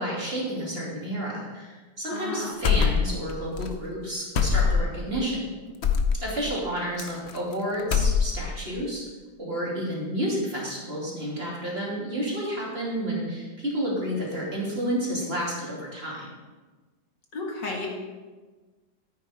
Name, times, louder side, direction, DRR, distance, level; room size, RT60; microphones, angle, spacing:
voice 1, 0.0-5.5 6.2-9.0 9.4-16.3, equal, 30° right, -5 dB, 3.1 m, -30 dB
voice 2, 2.1-2.6 17.3-17.9, left 2 dB, 75° left, -1 dB, 2.6 m, -33 dB
sound 1, 2.6-3.3 3.6-3.7 4.3-5.0 5.8-6.2 7.0-7.5 7.8-8.5, left 6 dB, 50° left, 0.9 m, -22 dB
14.5 x 9.2 x 3.6 m, 1.3 s
omnidirectional pair, 2.0 m